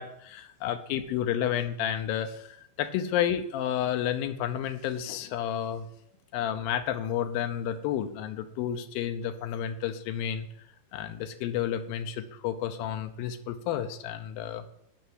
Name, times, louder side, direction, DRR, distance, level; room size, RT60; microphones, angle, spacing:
voice 1, 0.0-5.9 6.3-10.5 10.9-14.7, left 10 dB, 80° left, 8 dB, 2.1 m, -31 dB
9.0 x 5.6 x 7.9 m, 0.71 s
omnidirectional pair, 5.0 m